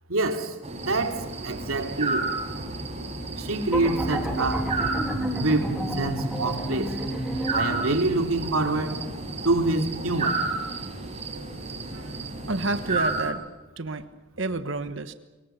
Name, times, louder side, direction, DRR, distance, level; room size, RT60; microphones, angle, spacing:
voice 1, 0.1-2.3 3.4-4.7 5.4-6.9 7.5-9.0 9.4-10.4, right 2 dB, 90° right, 2.8 m, -26 dB
sound 1, 0.6-13.3, right 3 dB, 30° right, 5.0 m, -32 dB
sound 2, 3.7-8.0, right 1 dB, 5° right, 3.3 m, -30 dB
voice 2, 12.5-13.4 13.8-14.1 14.4-15.1, right 2 dB, 65° right, 1.3 m, -29 dB
24.0 x 23.0 x 6.8 m
head